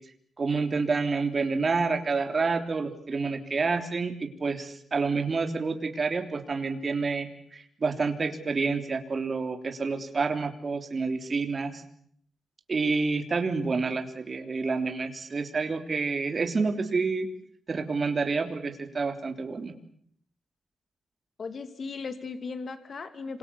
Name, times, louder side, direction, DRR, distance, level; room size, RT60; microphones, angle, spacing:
voice 1, 0.4-11.8 12.7-17.3 17.7-19.7, right 4 dB, 40° right, 6 dB, 3.3 m, -28 dB
voice 2, 21.4-23.4, left 4 dB, 50° left, 9 dB, 2.8 m, -37 dB
27.5 x 26.5 x 7.0 m, 0.67 s
wide cardioid pair, 125°, 0 cm